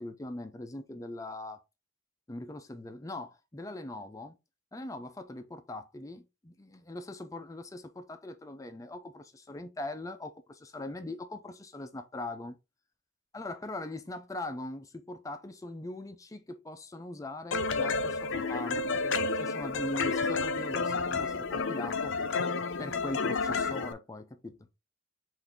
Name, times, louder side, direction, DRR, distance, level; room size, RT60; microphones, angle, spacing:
voice 1, 0.0-1.6 2.3-4.4 4.7-12.6 13.3-22.1 22.8-24.7, left 2 dB, 15° left, 0.4 m, -41 dB
sound 1, 17.5-23.9, left 4 dB, 80° left, 0.5 m, -30 dB
5.8 x 2.6 x 3.5 m
head